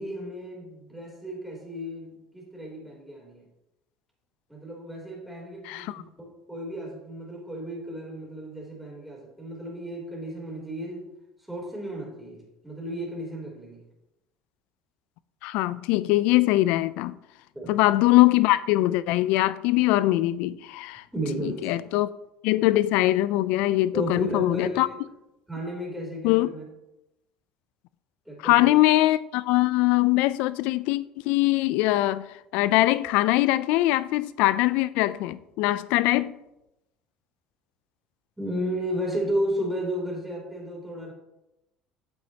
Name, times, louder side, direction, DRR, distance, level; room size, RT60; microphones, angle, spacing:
voice 1, 0.0-3.4 4.5-11.1 11.5-13.8 17.5-17.8 21.1-21.9 23.9-24.9 25.5-26.7 28.3-28.8 38.4-41.1, equal, 5° right, 3.2 m, -33 dB
voice 2, 5.6-6.0 15.4-17.2 17.7-21.0 21.4-22.1 22.4-24.9 26.2-26.5 28.4-32.3 32.5-36.3, left 17 dB, 75° left, 0.3 m, -22 dB
9.1 x 7.5 x 2.8 m
supercardioid pair, 95°, 2 cm